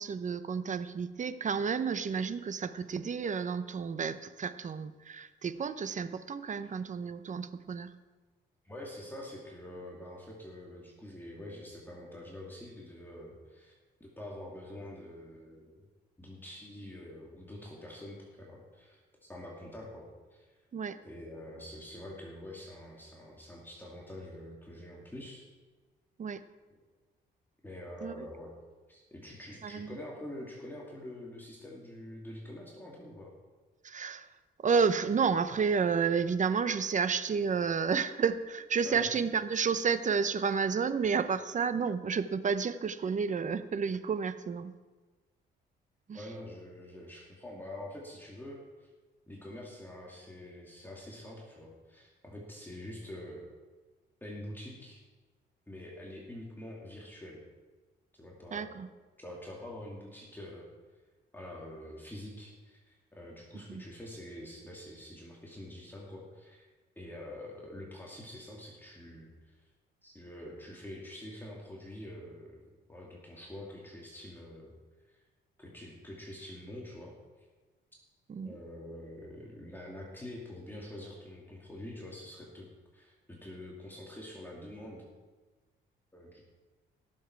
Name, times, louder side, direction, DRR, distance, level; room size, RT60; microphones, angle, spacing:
voice 1, 0.0-7.9 20.7-21.0 26.2-26.4 28.0-28.3 29.6-29.9 33.8-34.3 34.6-44.7 46.1-46.2 58.5-58.9 63.5-63.8 78.3-78.6, right 6 dB, 40° right, 12 dB, 0.8 m, -31 dB
voice 2, 8.6-13.7 14.0-15.9 16.2-20.6 21.0-25.5 27.6-28.5 28.9-33.3 38.8-39.1 46.1-48.9 49.3-53.4 54.2-55.0 55.7-57.4 58.2-58.7 59.2-60.7 61.3-66.7 67.0-69.7 70.0-72.6 72.9-74.7 75.1-75.2 75.6-77.5 78.4-82.7 82.9-85.0 86.1-86.4, left 1 dB, 10° left, -3 dB, 2.6 m, -46 dB
17.5 x 7.3 x 4.7 m, 1.3 s
cardioid pair, 90°, 20 cm